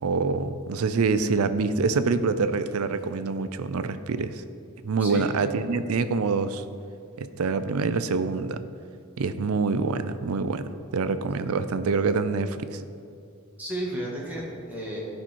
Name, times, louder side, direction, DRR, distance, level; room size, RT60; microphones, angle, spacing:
voice 1, 0.0-4.4 4.8-6.6 7.2-8.6 9.2-12.8, right 4 dB, 80° right, 12 dB, 0.5 m, -26 dB
voice 2, 5.0-5.3 13.6-15.0, right 1 dB, 5° right, -5 dB, 1.9 m, -33 dB
14.0 x 5.7 x 4.5 m, 2.4 s
head